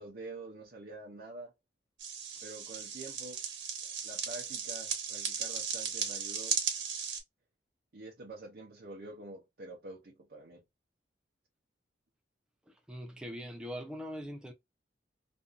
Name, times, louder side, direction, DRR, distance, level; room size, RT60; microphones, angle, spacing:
voice 1, 0.0-1.5 2.4-3.4 3.8-6.6 7.9-10.6, right 2 dB, 55° right, 0.6 m, -47 dB
sound 1, 2.0-7.2, right 7 dB, 90° right, 0.9 m, -36 dB
voice 2, 12.7-14.5, equal, 5° right, 0.3 m, -42 dB
2.6 x 2.4 x 2.3 m
head